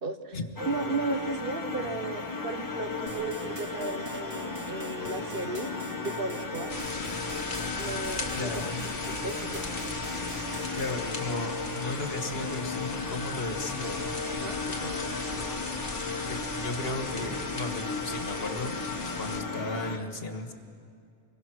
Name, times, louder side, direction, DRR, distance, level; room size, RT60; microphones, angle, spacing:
voice 1, 0.0-5.7 6.0-6.8 7.7-8.6 9.0-9.6 14.3-15.2, right 3 dB, 55° right, 7 dB, 1.3 m, -35 dB
sound 1, 0.6-20.0, left 3 dB, 20° left, 1.3 m, -35 dB
sound 2, 3.1-10.9, right 2 dB, 85° right, 2.8 m, -45 dB
sound 3, 6.7-19.4, left 3 dB, 45° left, 1.5 m, -38 dB
voice 2, 8.3-8.8 10.7-14.1 16.2-18.7 19.2-20.5, left 2 dB, 65° left, 5 dB, 1.7 m, -35 dB
25.5 x 22.0 x 6.2 m, 2.3 s
omnidirectional pair, 1.1 m